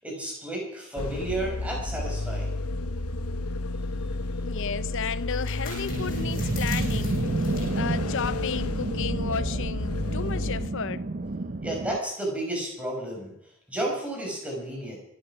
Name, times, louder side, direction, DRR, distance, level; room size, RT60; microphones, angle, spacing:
voice 1, 0.0-2.6 11.6-15.0, right 1 dB, 5° right, 5.1 m, -32 dB
sound 1, 1.0-10.7, left 2 dB, 85° left, 1.0 m, -31 dB
sound 2, 3.8-9.0, left 3 dB, 40° left, 7.9 m, -45 dB
voice 2, 4.4-7.3 7.7-11.0, left 6 dB, 55° left, 0.6 m, -33 dB
sound 3, 5.9-12.0, right 3 dB, 40° right, 0.6 m, -30 dB
25.0 x 8.8 x 5.8 m
head